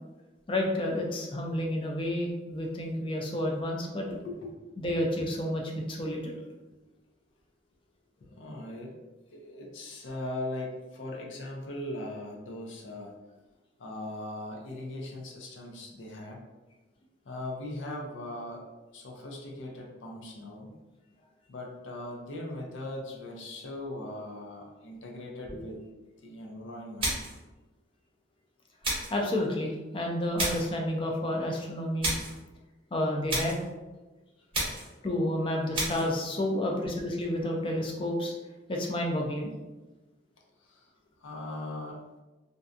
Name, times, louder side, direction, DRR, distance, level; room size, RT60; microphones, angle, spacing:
voice 1, 0.5-4.1 4.8-6.4 25.5-25.6 29.1-32.1 32.9-33.6 35.0-38.3 38.7-39.5, left 1 dB, 25° left, 0 dB, 0.4 m, -30 dB
voice 2, 4.2-4.5 8.3-9.0 9.3-13.2 13.8-16.4 17.3-18.7 18.9-20.7 21.5-25.8 26.2-27.1 40.7-40.9 41.2-42.0, left 1 dB, 90° left, 0 dB, 0.5 m, -39 dB
sound 1, 27.0-27.4 28.8-29.2 30.4-30.7 32.0-32.4 33.3-33.7 34.5-35.0 35.7-36.1, right 1 dB, 30° right, 0.7 m, -31 dB
2.5 x 2.2 x 2.5 m, 1.1 s
head